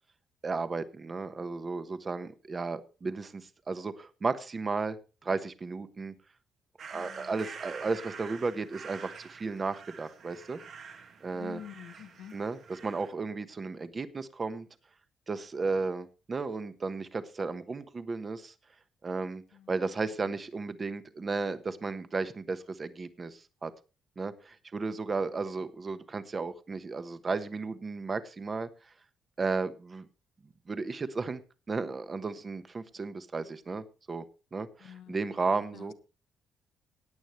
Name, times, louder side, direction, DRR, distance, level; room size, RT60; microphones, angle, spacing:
voice 1, 0.4-5.0 5.2-6.1 6.9-10.6 11.2-11.6 12.3-14.7 15.3-18.5 19.0-19.4 19.7-23.7 24.2-28.7 29.4-30.0 30.7-31.4 31.7-34.3 34.5-35.9, right 4 dB, 35° right, 12 dB, 1.2 m, -34 dB
sound 1, 6.8-13.1, right 6 dB, 65° right, 2.0 m, -47 dB
voice 2, 6.9-7.4 11.3-12.4 19.5-19.7 20.2-20.3 21.2-21.3 34.8-35.2 35.5-35.9, left 10 dB, 85° left, 12 dB, 1.1 m, -48 dB
17.5 x 9.2 x 3.2 m, 0.32 s
cardioid pair, 90°, 0 cm